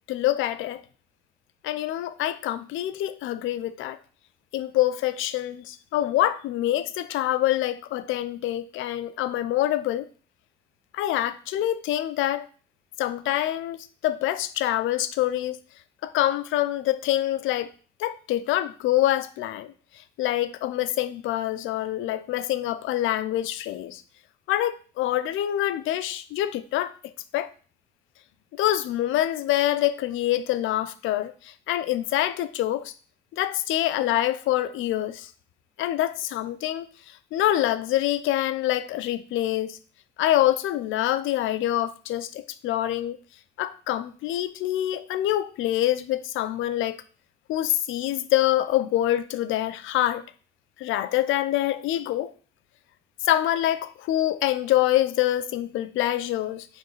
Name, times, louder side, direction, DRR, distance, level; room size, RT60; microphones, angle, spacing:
voice 1, 0.1-0.8 1.6-4.0 4.5-10.1 10.9-12.5 13.0-13.8 14.0-15.6 16.0-17.7 18.0-19.7 20.2-24.0 24.5-26.9 27.3-27.5 28.6-31.3 31.7-32.9 33.3-35.3 35.8-36.9 37.3-39.8 40.2-43.2 43.6-47.0 47.5-50.2 50.8-52.3 53.2-56.7, left 13 dB, 90° left, 0.5 m, -25 dB
5.2 x 4.6 x 4.0 m
cardioid pair, 90°, 20 cm